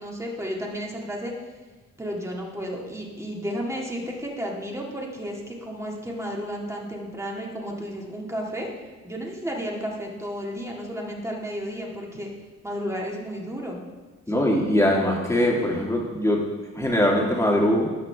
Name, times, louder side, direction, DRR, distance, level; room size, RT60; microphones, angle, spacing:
voice 1, 0.0-1.3 2.0-8.7 9.0-12.3 12.6-13.8, equal, 10° right, -1 dB, 2.1 m, -32 dB
voice 2, 14.3-16.4 16.7-17.9, left 1 dB, 10° left, -2 dB, 2.4 m, -21 dB
17.0 x 6.0 x 3.5 m, 1.3 s
cardioid pair, 90°, 30 cm